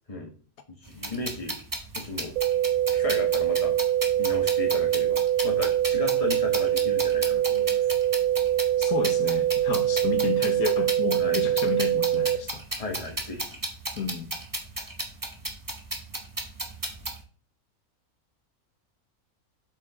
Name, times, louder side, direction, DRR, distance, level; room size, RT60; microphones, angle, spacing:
voice 1, 0.8-1.6 1.9-2.3 2.9-3.8 4.2-7.9 11.2-11.4 12.8-13.5, left 3 dB, 25° left, 1.6 m, -35 dB
sound 1, 0.9-17.2, right 2 dB, 15° right, 1.0 m, -34 dB
sound 2, 2.4-12.4, right 12 dB, 75° right, 1.1 m, -24 dB
voice 2, 8.8-12.6 14.0-14.3, left 5 dB, 75° left, 1.5 m, -31 dB
7.6 x 5.5 x 3.7 m
omnidirectional pair, 1.6 m